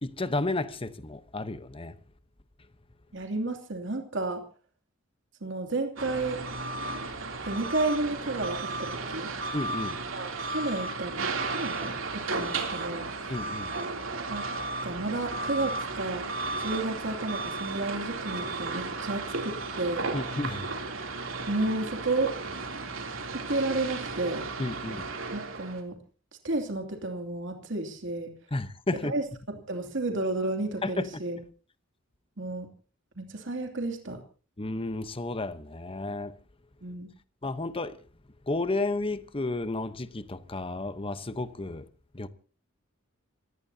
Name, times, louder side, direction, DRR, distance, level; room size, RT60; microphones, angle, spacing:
voice 1, 0.0-2.0 9.5-10.0 13.3-13.7 20.1-20.7 24.6-25.1 28.5-29.1 30.8-31.2 34.6-36.4 37.4-38.0 38.5-41.8 42.1-42.3, left 2 dB, 25° left, 1.0 m, -32 dB
voice 2, 3.1-4.4 5.4-6.4 7.5-9.3 10.1-11.1 11.5-13.1 14.3-14.4 14.8-16.3 16.6-20.1 21.5-22.3 23.3-24.4 25.3-25.9 26.4-28.3 29.0-29.2 29.7-31.4 32.4-32.7 33.2-34.2 36.8-37.1, right 2 dB, 65° right, 2.8 m, -31 dB
sound 1, 6.0-25.8, right 3 dB, 85° right, 3.1 m, -34 dB
26.5 x 18.0 x 2.8 m
head